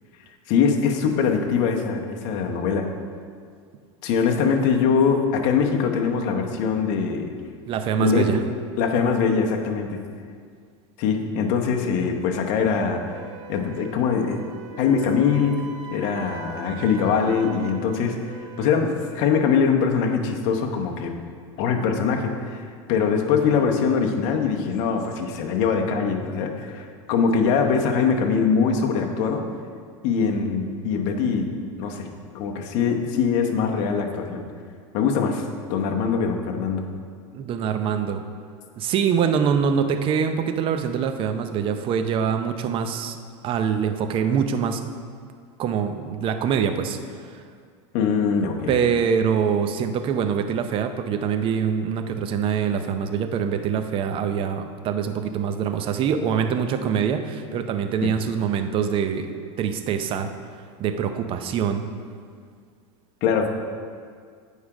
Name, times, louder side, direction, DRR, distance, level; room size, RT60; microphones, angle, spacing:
voice 1, 0.5-2.9 4.0-7.3 8.0-8.3 8.8-10.0 11.0-13.0 13.5-14.4 14.8-15.5 15.9-21.1 21.6-22.6 22.9-29.4 30.0-31.5 31.8-34.4 34.9-35.4 35.7-36.8 47.9-48.8 63.2-63.5, left 6 dB, 55° left, 3 dB, 0.9 m, -22 dB
voice 2, 7.7-8.4 37.3-38.2 38.8-43.2 43.4-44.8 45.6-47.0 47.3-47.4 48.7-59.3 59.6-60.3 60.8-61.9, right 7 dB, 35° right, 8 dB, 0.6 m, -24 dB
Wind instrument woodwind instrument, 13.1-19.5, right 8 dB, 75° right, 0.9 m, -41 dB
8.3 x 4.9 x 4.8 m, 2.1 s
supercardioid pair, 125°, 15 cm